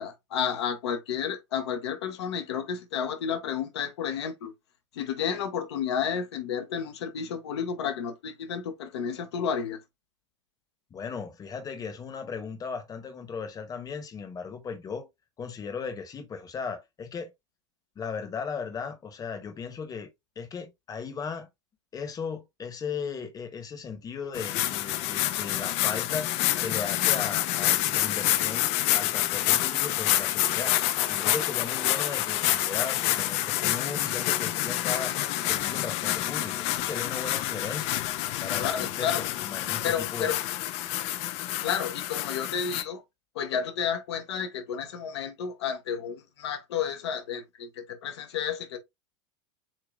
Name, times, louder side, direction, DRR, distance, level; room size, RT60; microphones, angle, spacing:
voice 1, 0.0-4.5 4.9-9.8 38.6-39.2 39.8-40.4 41.6-43.0 43.3-48.8, left 7 dB, 65° left, 1.1 m, -31 dB
voice 2, 10.9-15.1 15.4-17.3 17.9-21.5 21.9-26.3 26.6-30.7 31.1-35.1 35.4-37.9 38.4-40.4, left 5 dB, 25° left, 1.2 m, -37 dB
sound 1, 24.3-42.8, left 14 dB, 45° left, 0.6 m, -28 dB
7.5 x 2.8 x 2.4 m
figure-of-eight pair, 85°, 15 cm